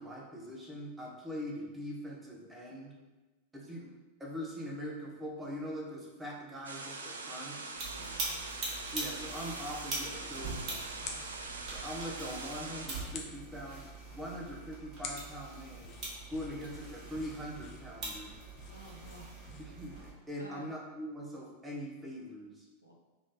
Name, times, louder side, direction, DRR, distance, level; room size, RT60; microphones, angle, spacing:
voice 1, 0.0-2.9 3.5-3.9 4.2-7.6 8.9-10.8 11.7-16.0 16.3-18.4 19.6-20.0 20.3-22.7, equal, 10° right, -2 dB, 0.8 m, -42 dB
sound 1, 6.6-12.9, right 3 dB, 70° right, 0.4 m, -43 dB
sound 2, 7.7-20.1, right 2 dB, 30° right, 1.2 m, -43 dB
voice 2, 7.9-8.5 10.3-11.3 18.7-19.3 20.4-20.7 22.8-22.9, right 1 dB, 90° left, -2 dB, 0.6 m, -53 dB
sound 3, 10.9-19.9, left 5 dB, 40° left, 0.5 m, -51 dB
3.6 x 2.6 x 3.7 m, 1.2 s
figure-of-eight pair, 90°, 0 cm